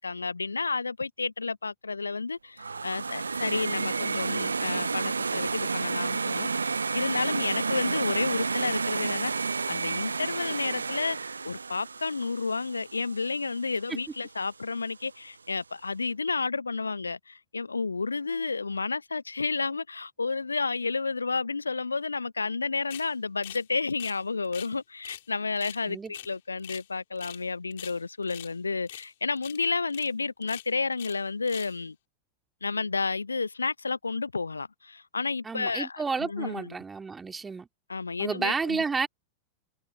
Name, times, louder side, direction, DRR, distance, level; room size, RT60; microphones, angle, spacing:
voice 1, 0.0-31.9 32.6-36.7 37.9-38.8, left 4 dB, 80° left, 0.9 m, -31 dB
sound 1, 2.6-13.6, right 4 dB, 75° right, 0.6 m, -31 dB
sound 2, 22.9-23.1 23.4-23.6 23.9-24.7 25.0-25.3 25.6-26.9 27.2-27.4 27.7-28.5 28.9-29.1 29.4-29.6 29.9-30.1 30.4-31.2 31.4-31.8, left 14 dB, 55° left, 5.7 m, -43 dB
voice 2, 35.4-37.7 38.2-39.1, right 5 dB, 15° right, 2.7 m, -31 dB
figure-of-eight pair, 90°, 0 cm